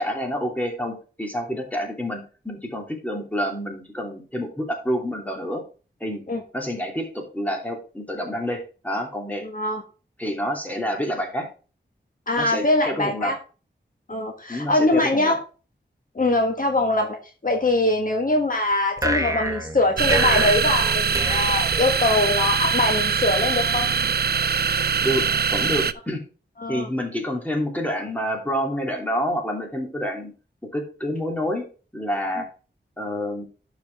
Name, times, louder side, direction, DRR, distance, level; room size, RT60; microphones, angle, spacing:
voice 1, 0.0-5.6 6.0-6.2 6.5-9.4 10.2-11.5 12.4-13.3 14.5-15.4 25.0-25.2 25.5-26.2 26.7-30.3 30.6-31.7 31.9-32.5 33.0-33.4, equal, 10° left, 0 dB, 2.9 m, -28 dB
voice 2, 9.4-9.8 12.3-13.4 14.1-15.4 16.1-17.2 17.4-23.9 26.6-26.9, left 2 dB, 45° left, 2 dB, 1.5 m, -22 dB
sound 1, 19.0-22.4, right 1 dB, 15° right, 1.3 m, -28 dB
sound 2, 20.0-25.9, right 6 dB, 55° right, 0.5 m, -22 dB
12.0 x 5.0 x 3.5 m, 0.36 s
wide cardioid pair, 75°, 19 cm